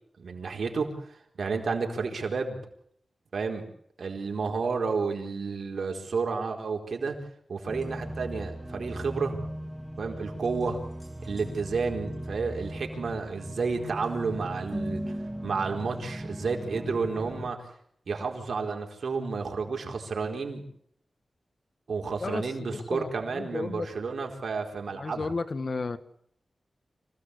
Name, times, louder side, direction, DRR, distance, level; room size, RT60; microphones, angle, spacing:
voice 1, 0.2-2.6 3.3-3.6 4.0-7.2 7.5-9.4 10.0-10.8 11.2-15.1 15.4-17.7 18.1-20.6 21.9-25.3, right 4 dB, 80° right, 3 dB, 4.4 m, -31 dB
sound 1, 7.7-17.5, equal, 5° right, 4.4 m, -37 dB
voice 2, 22.2-23.9 24.9-26.0, left 3 dB, 55° left, 12 dB, 1.6 m, -33 dB
26.0 x 17.0 x 8.4 m, 0.70 s
cardioid pair, 65°, 0 cm